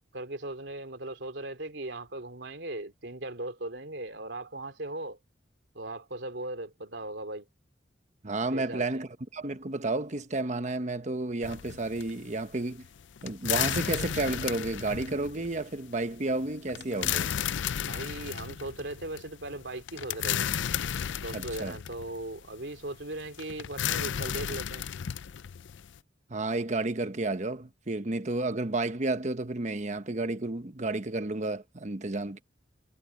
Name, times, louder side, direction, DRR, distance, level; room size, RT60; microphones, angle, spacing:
voice 1, 0.1-5.2 5.7-7.5 8.5-9.0 17.8-20.5 21.2-24.9, right 2 dB, 75° right, 2.8 m, -38 dB
voice 2, 8.2-12.8 13.2-17.3 21.3-21.8 26.3-32.4, right 2 dB, 40° right, 1.1 m, -31 dB
sound 1, 11.4-26.0, left 9 dB, 90° left, 0.5 m, -34 dB
head